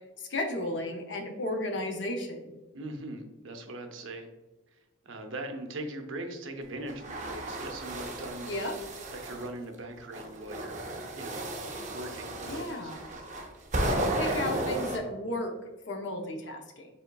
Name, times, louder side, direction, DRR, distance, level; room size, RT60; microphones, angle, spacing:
voice 1, 0.2-2.5 8.4-8.8 12.5-13.0 14.2-15.6 15.9-16.9, left 1 dB, 65° left, 4 dB, 0.7 m, -34 dB
voice 2, 2.7-4.3 4.7-8.5 9.1-10.8 11.1-11.5 11.9-12.9, right 1 dB, 80° right, 5 dB, 0.6 m, -40 dB
sound 1, 6.9-9.5 10.1-15.0, right 1 dB, 40° right, 0.6 m, -34 dB
5.3 x 3.7 x 2.3 m, 1.1 s
head